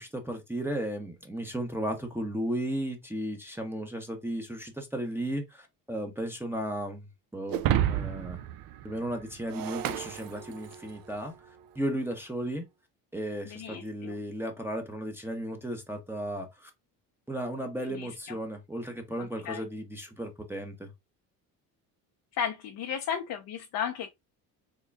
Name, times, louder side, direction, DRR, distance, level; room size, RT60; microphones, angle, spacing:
voice 1, 0.0-7.1 7.3-7.6 7.9-8.4 8.8-11.3 11.8-12.6 13.1-16.7 17.3-20.9, right 1 dB, 5° right, 0.8 m, -35 dB
Shatter, 7.5-11.0, right 11 dB, 55° right, 0.5 m, -31 dB
voice 2, 13.4-14.2 17.9-18.4 19.2-19.6 22.3-24.1, left 8 dB, 50° left, 0.6 m, -35 dB
3.7 x 2.2 x 3.3 m
supercardioid pair, 85°, 43 cm